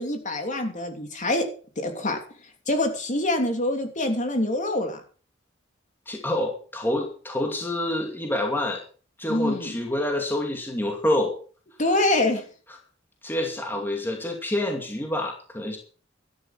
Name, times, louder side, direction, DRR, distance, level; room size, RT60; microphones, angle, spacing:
voice 1, 0.0-1.5 1.8-2.2 2.7-5.0 9.3-9.7 11.8-12.4, left 1 dB, 40° left, 4 dB, 3.1 m, -25 dB
voice 2, 6.1-8.8 9.2-11.3 13.2-15.8, left 1 dB, 10° left, 2 dB, 2.5 m, -27 dB
13.0 x 10.5 x 6.0 m, 0.40 s
head